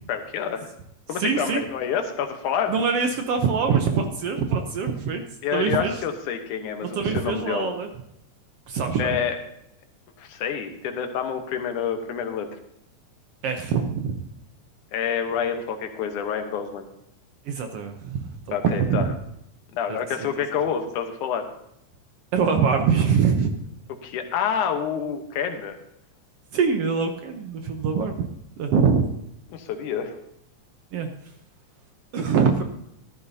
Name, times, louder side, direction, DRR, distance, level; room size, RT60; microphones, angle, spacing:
voice 1, 0.1-0.7 1.1-2.7 5.4-7.7 9.0-9.4 10.2-12.6 14.9-16.9 18.5-19.1 19.7-21.5 24.0-25.8 29.5-30.2, left 7 dB, 85° left, 6 dB, 2.6 m, -28 dB
voice 2, 1.2-1.6 2.7-5.2 5.5-5.9 6.9-7.9 8.7-9.2 13.4-14.2 17.5-19.1 19.9-20.0 22.3-23.5 26.5-28.3 28.6-29.1 30.9-31.1 32.1-32.6, right 6 dB, 65° right, 5 dB, 1.6 m, -23 dB
14.0 x 13.0 x 2.8 m, 0.77 s
omnidirectional pair, 3.5 m